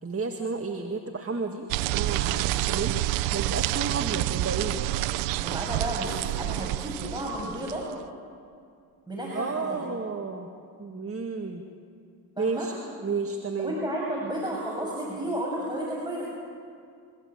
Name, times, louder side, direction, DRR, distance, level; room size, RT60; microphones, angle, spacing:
voice 1, 0.0-4.8 9.3-10.5 10.8-11.6 12.4-12.7 13.0-13.7, right 4 dB, 30° right, 4 dB, 2.1 m, -32 dB
sound 1, 1.7-7.9, right 16 dB, 80° right, 0.7 m, -28 dB
voice 2, 5.4-7.8 9.1-9.8 12.4-12.7 13.6-16.2, right 1 dB, 10° right, -4 dB, 6.9 m, -32 dB
27.5 x 15.0 x 9.0 m, 2.3 s
hypercardioid pair, 50°, 45 cm